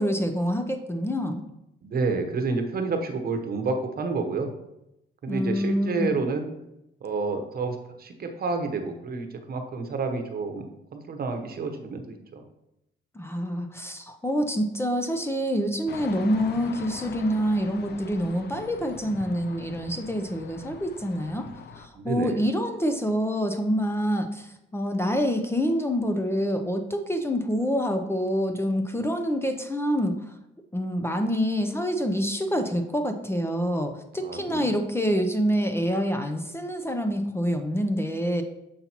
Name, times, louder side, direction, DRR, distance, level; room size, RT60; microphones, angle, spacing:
voice 1, 0.0-1.4 5.3-6.2 13.1-21.5 21.8-30.1 30.7-38.4, equal, 10° left, 6 dB, 0.6 m, -26 dB
voice 2, 1.8-4.5 5.2-6.5 7.0-12.4 21.9-22.4 34.2-34.7, right 4 dB, 50° right, 6 dB, 1.0 m, -29 dB
sound 1, 15.9-21.9, left 6 dB, 55° left, 0.5 m, -42 dB
6.9 x 5.5 x 2.9 m, 0.86 s
cardioid pair, 90°, 20 cm